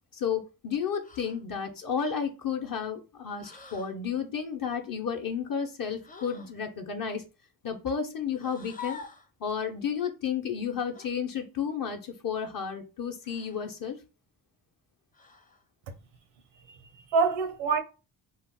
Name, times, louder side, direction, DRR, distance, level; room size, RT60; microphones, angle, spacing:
voice 1, 0.1-7.2 7.6-9.0 9.4-14.0, left 7 dB, 45° left, 0.8 m, -32 dB
sound 1, 1.0-1.4 3.4-4.0 6.0-6.6 8.3-9.3 10.9-11.1 13.2-13.7 15.1-15.6, left 6 dB, 20° left, 0.5 m, -46 dB
voice 2, 16.7-17.8, right 5 dB, 85° right, 0.7 m, -27 dB
2.4 x 2.0 x 3.5 m
supercardioid pair, 50°, 46 cm